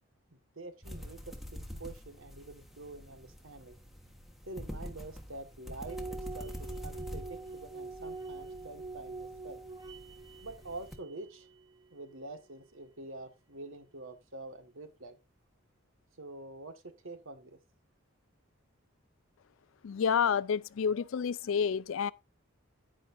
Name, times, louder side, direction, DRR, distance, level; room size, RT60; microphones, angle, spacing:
voice 1, 0.6-3.8 4.4-9.6 10.4-11.5 11.9-15.2 16.2-17.6, right 2 dB, 75° right, 1.7 m, -46 dB
sound 1, 0.8-11.0, equal, ahead, 1.3 m, -46 dB
sound 2, 5.9-12.3, right 3 dB, 20° right, 0.7 m, -45 dB
voice 2, 19.8-22.1, left 7 dB, 70° left, 0.4 m, -29 dB
10.5 x 9.2 x 2.6 m
head